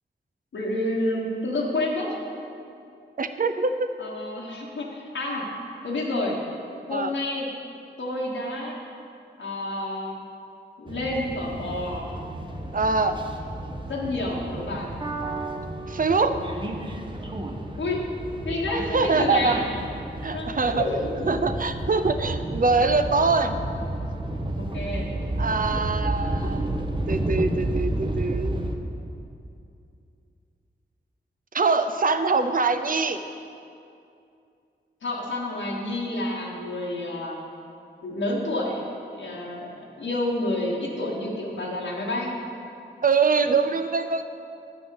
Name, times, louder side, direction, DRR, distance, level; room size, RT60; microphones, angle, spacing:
voice 1, 0.5-2.1 4.0-5.4 5.8-6.4 6.9-7.5 8.0-8.8 9.4-10.2 10.8-12.0 13.8-14.9 17.8-18.0 18.4-19.6 20.3-21.4 24.6-25.1 35.0-37.4 38.0-38.9 39.1-42.4, left 1 dB, 80° left, -4 dB, 1.3 m, -29 dB
voice 2, 3.2-3.9 6.9-7.1 12.7-13.1 15.9-16.4 18.9-19.6 20.2-20.8 21.3-23.5 25.4-26.6 27.1-28.6 31.5-33.2 43.0-44.2, right 4 dB, 45° right, 9 dB, 0.6 m, -23 dB
sound 1, 10.9-28.8, right 1 dB, 25° right, 1.0 m, -31 dB
8.8 x 6.1 x 6.4 m, 2.6 s
cardioid pair, 45°, 20 cm